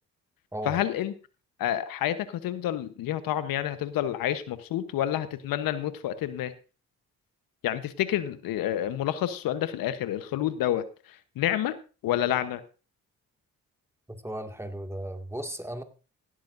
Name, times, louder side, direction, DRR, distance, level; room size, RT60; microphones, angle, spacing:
voice 1, 0.6-1.1 1.6-6.5 7.6-11.8 12.0-12.6, left 12 dB, 80° left, 12 dB, 1.0 m, -29 dB
voice 2, 14.2-15.8, right 1 dB, 10° right, 6 dB, 2.1 m, -35 dB
16.0 x 12.5 x 2.6 m, 0.33 s
supercardioid pair, 55°, 34 cm